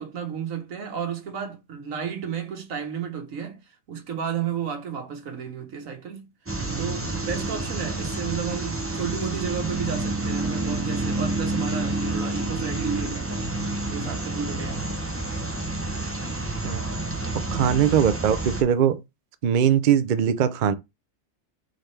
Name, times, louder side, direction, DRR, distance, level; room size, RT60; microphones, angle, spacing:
voice 1, 0.0-3.6 3.9-6.3 6.8-13.5 13.9-14.9 17.4-17.7, right 7 dB, 85° right, 1.5 m, -32 dB
sound 1, 6.5-18.6, right 2 dB, 15° right, 0.7 m, -29 dB
voice 2, 17.5-19.0 19.4-20.7, right 9 dB, 60° right, 0.5 m, -21 dB
4.2 x 3.8 x 3.3 m
omnidirectional pair, 1.4 m